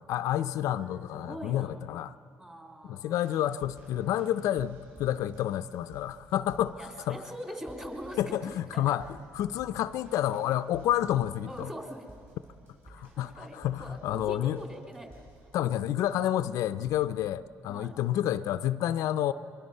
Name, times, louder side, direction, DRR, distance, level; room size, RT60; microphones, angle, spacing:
voice 1, 0.0-2.1 2.9-7.2 8.2-9.0 9.3-11.7 12.9-14.6 15.5-19.3, left 12 dB, 75° left, 0.5 m, -29 dB
voice 2, 0.7-1.8 2.4-3.2 6.8-9.0 11.5-12.1 12.9-15.2 17.7-17.9, equal, 15° right, 3.3 m, -43 dB
sound 1, 3.2-16.4 16.8-17.2 18.0-18.1, right 1 dB, 45° right, 7.5 m, -54 dB
24.5 x 22.5 x 5.5 m
cardioid pair, 90°, 6 cm